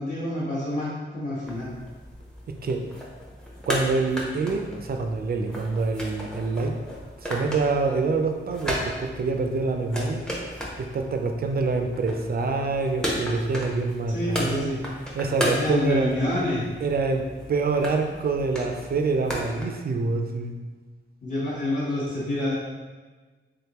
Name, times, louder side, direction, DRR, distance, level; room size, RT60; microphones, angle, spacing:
voice 1, 0.0-1.7 14.1-14.8 15.4-16.6 21.2-22.5, left 1 dB, 40° left, -10 dB, 1.0 m, -27 dB
sound 1, 1.4-19.6, equal, 5° left, 0.6 m, -35 dB
voice 2, 3.7-6.7 7.2-10.2 10.8-14.7 15.2-16.1 16.8-20.6, right 3 dB, 45° right, 5 dB, 0.4 m, -26 dB
3.6 x 3.5 x 2.9 m, 1.3 s
wide cardioid pair, 145°, 21 cm